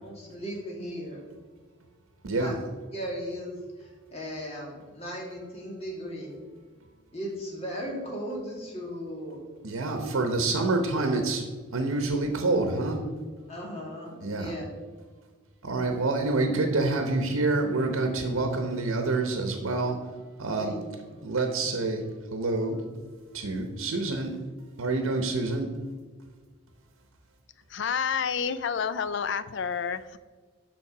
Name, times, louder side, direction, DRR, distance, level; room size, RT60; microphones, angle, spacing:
voice 1, 0.0-1.2 2.4-2.5 2.9-6.3 7.1-9.4 13.5-14.6 20.6-20.8 21.1-21.2, equal, 30° left, -2 dB, 1.9 m, -37 dB
voice 2, 2.2-2.6 9.6-13.0 14.2-14.5 15.6-20.0 20.4-20.7 21.2-22.0 22.3-22.8 23.3-24.4 24.8-25.7, right 3 dB, 85° right, 4 dB, 0.9 m, -27 dB
voice 3, 27.7-30.2, left 6 dB, 60° left, 14 dB, 0.4 m, -29 dB
7.1 x 6.0 x 4.9 m, 1.5 s
head